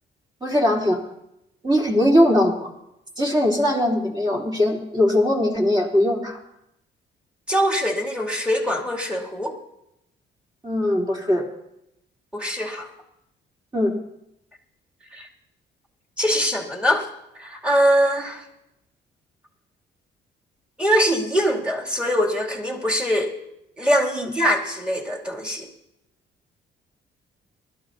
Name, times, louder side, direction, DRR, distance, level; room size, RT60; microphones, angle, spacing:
voice 1, 0.4-1.0 1.6-2.7 3.2-6.4 10.6-11.5 13.7-14.0 24.2-24.3, left 1 dB, 20° right, -1 dB, 3.4 m, -20 dB
voice 2, 7.5-9.6 12.3-12.9 15.1-15.3 16.2-17.1 17.3-18.4 20.8-23.3 23.8-25.7, equal, 5° right, -1 dB, 2.6 m, -22 dB
21.0 x 13.0 x 2.8 m, 0.82 s
cardioid pair, 90°, 20 cm